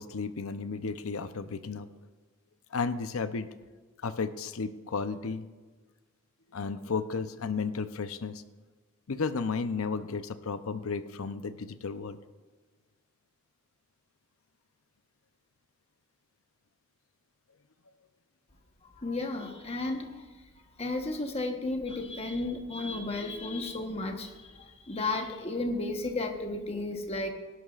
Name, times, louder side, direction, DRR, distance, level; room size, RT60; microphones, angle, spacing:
voice 1, 0.0-1.9 2.7-3.5 4.0-5.5 6.5-8.4 9.1-12.2, left 4 dB, 75° left, 12 dB, 0.6 m, -33 dB
voice 2, 19.0-20.1 20.8-24.3 24.9-27.3, left 2 dB, 30° left, 4 dB, 1.1 m, -33 dB
18.0 x 11.5 x 2.5 m, 1.3 s
head